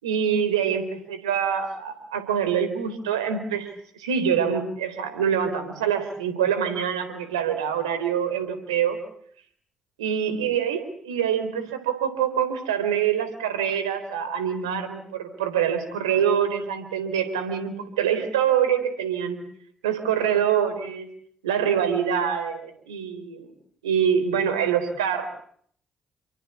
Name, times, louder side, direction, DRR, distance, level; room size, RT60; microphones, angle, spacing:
voice 1, 0.0-9.0 10.0-19.4 19.8-21.1 21.4-23.5 23.8-25.2, right 8 dB, 85° right, 10 dB, 4.0 m, -25 dB
29.5 x 23.5 x 8.5 m, 0.63 s
hypercardioid pair, 45°, 3 cm